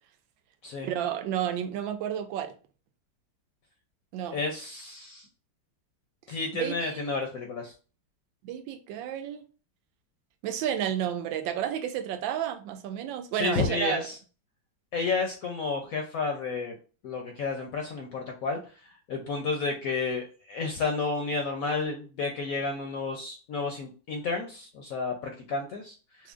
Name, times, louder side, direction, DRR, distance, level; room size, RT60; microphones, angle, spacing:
voice 1, 0.8-2.5 4.1-4.4 6.6-7.1 8.4-9.5 10.4-14.0, right 10 dB, 85° right, 1.3 m, -31 dB
voice 2, 4.3-5.3 6.3-7.7 13.3-14.2 14.9-16.7 17.0-26.3, left 4 dB, 70° left, 0.8 m, -31 dB
5.9 x 2.1 x 2.4 m
omnidirectional pair, 2.0 m